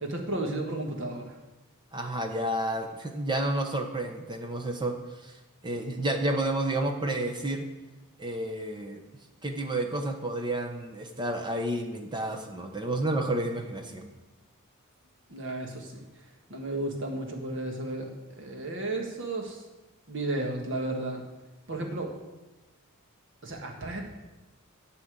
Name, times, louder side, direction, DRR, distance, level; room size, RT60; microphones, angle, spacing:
voice 1, 0.0-1.4 15.3-16.0 16.5-18.1 18.4-19.6 20.1-21.2 21.7-22.1 23.4-24.0, right 2 dB, 55° right, 2 dB, 1.7 m, -33 dB
voice 2, 1.9-5.0 5.2-5.3 5.6-7.7 8.2-9.0 9.4-14.1, right 1 dB, 20° right, 4 dB, 0.9 m, -30 dB
11.5 x 4.3 x 8.0 m, 1.1 s
head